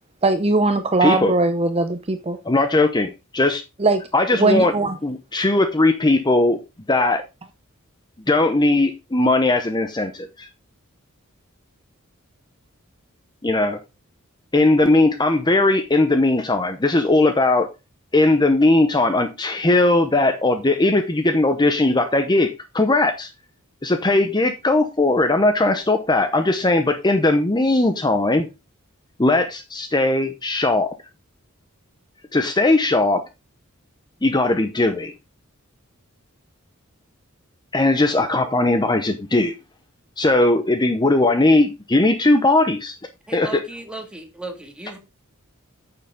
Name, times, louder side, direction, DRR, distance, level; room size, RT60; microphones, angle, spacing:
voice 1, 0.2-2.4 3.8-4.0 4.4-4.9, right 2 dB, 30° right, 0.7 m, -19 dB
voice 2, 1.0-1.3 2.4-3.6 4.1-4.7 5.0-6.6 6.9-7.2 8.3-10.5 13.4-13.8 14.5-17.7 18.1-23.3 23.8-28.5 29.2-30.9 32.3-33.2 34.2-35.1 37.7-39.5 40.2-42.9 43.3-43.6, left 2 dB, 20° left, 0.8 m, -18 dB
voice 3, 43.3-45.0, right 2 dB, 5° right, 2.0 m, -35 dB
9.8 x 6.9 x 3.7 m
head